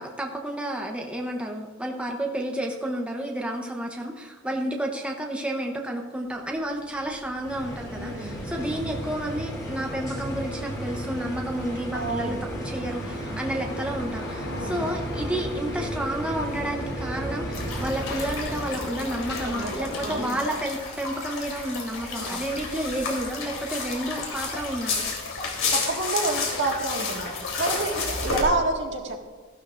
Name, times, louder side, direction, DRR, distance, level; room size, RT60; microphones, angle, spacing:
voice 1, 0.0-25.1, right 1 dB, 5° right, 0 dB, 0.8 m, -31 dB
sound 1, 6.4-20.3, left 1 dB, 55° left, 1.3 m, -39 dB
sound 2, 7.4-18.8, right 1 dB, 20° left, 2.4 m, -34 dB
voice 2, 7.9-8.4 11.9-12.4 14.4-14.8 19.4-20.4 22.1-22.4 25.7-29.2, right 2 dB, 60° right, 1 dB, 1.7 m, -29 dB
sound 3, 17.5-28.4, left 4 dB, 75° left, 3.2 m, -31 dB
15.5 x 12.0 x 2.5 m, 1.4 s
head